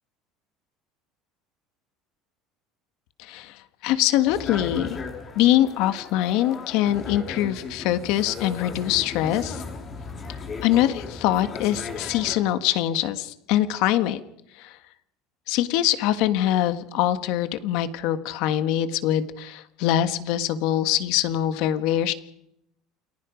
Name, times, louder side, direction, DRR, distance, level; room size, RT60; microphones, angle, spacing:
voice 1, 3.2-4.9 5.3-9.6 10.6-14.2 14.6-14.7 15.5-22.1, left 12 dB, 60° left, 12 dB, 1.5 m, -23 dB
sound 1, 4.3-12.3, left 4 dB, 25° left, 3.2 m, -36 dB
29.0 x 20.5 x 5.2 m, 0.78 s
cardioid pair, 165°, 0 cm